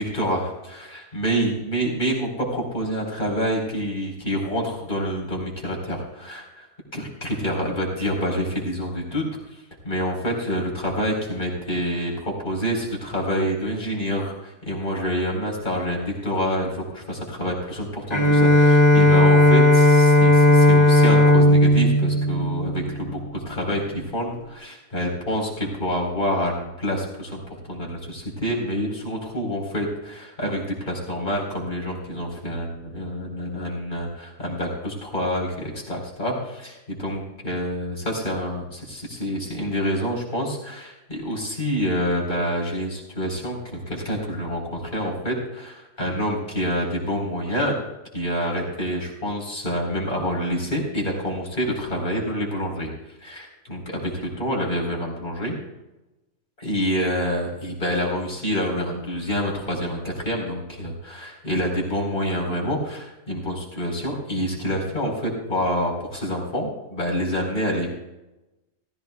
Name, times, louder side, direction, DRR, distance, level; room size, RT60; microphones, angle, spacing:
voice 1, 0.1-6.7 6.9-47.7 48.1-52.9 53.2-55.6 56.6-67.9, equal, 35° left, -1 dB, 4.7 m, -27 dB
Bowed string instrument, 18.1-23.4, left 1 dB, 20° left, 2.5 m, -15 dB
18.5 x 15.5 x 2.4 m, 1.0 s
omnidirectional pair, 1.4 m